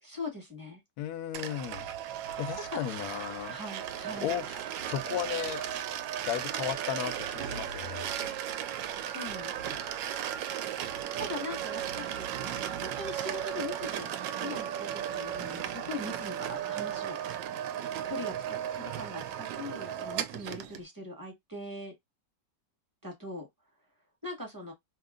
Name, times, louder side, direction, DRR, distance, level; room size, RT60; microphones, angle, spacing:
voice 1, 0.0-0.8 2.2-2.3 2.6-2.8 3.5-4.4 9.0-9.8 11.2-14.1 14.4-17.2 18.0-21.9 23.0-23.5 24.2-24.7, left 2 dB, 15° right, 1.1 m, -41 dB
voice 2, 1.0-1.9 2.4-3.6 4.2-4.5 4.9-5.6 6.3-8.1, left 10 dB, 70° left, 1.0 m, -35 dB
sound 1, 1.3-20.8, right 10 dB, 85° right, 1.3 m, -35 dB
3.0 x 2.9 x 2.4 m
omnidirectional pair, 2.0 m